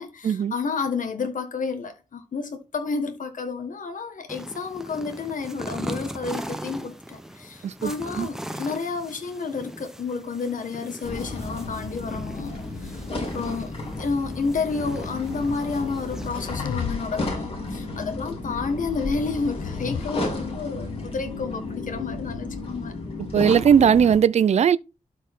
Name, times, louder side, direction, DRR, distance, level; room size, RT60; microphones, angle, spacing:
voice 1, 0.0-22.9, left 4 dB, 70° left, 1.5 m, -30 dB
sound 1, 4.3-16.3, equal, 5° right, 0.8 m, -39 dB
sound 2, 11.0-24.2, left 2 dB, 45° left, 3.4 m, -33 dB
sound 3, 15.9-17.1 17.4-17.8 19.0-20.0, left 7 dB, 90° left, 0.6 m, -33 dB
voice 2, 23.3-24.8, right 8 dB, 55° right, 0.4 m, -18 dB
12.0 x 4.6 x 3.6 m
wide cardioid pair, 135°, 14 cm